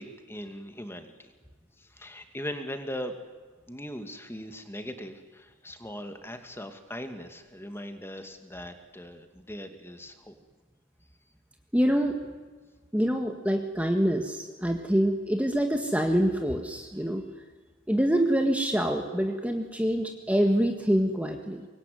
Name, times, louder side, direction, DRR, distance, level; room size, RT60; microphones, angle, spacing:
voice 1, 0.0-1.3 1.8-3.2 3.7-10.4, equal, 10° left, 7 dB, 2.3 m, -40 dB
voice 2, 11.7-12.2 12.9-17.2 17.9-21.7, equal, 5° right, 4 dB, 1.7 m, -25 dB
25.0 x 22.0 x 9.5 m, 1.4 s
head